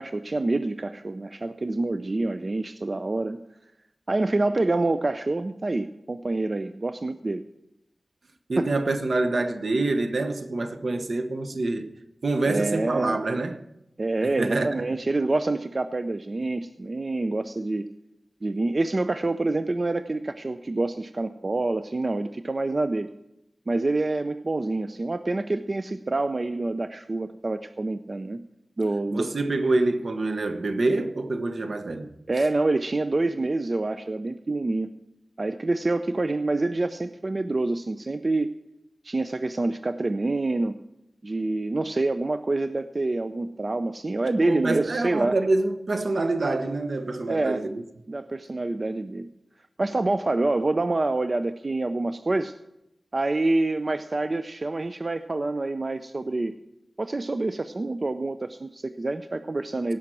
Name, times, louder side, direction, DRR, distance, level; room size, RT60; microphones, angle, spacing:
voice 1, 0.0-3.4 4.1-7.5 8.6-8.7 12.5-13.2 14.0-17.9 18.4-23.1 23.7-28.4 28.8-29.3 32.3-34.9 35.4-38.6 39.0-40.8 41.2-45.4 47.3-47.6 48.1-49.3 49.8-52.5 53.1-56.6 57.0-60.0, right 2 dB, 50° right, 0.5 m, -27 dB
voice 2, 8.5-11.9 12.2-13.6 14.4-14.8 29.1-32.1 44.4-47.8, right 2 dB, 75° right, 1.0 m, -26 dB
17.0 x 5.8 x 7.6 m
wide cardioid pair, 65°, 0 cm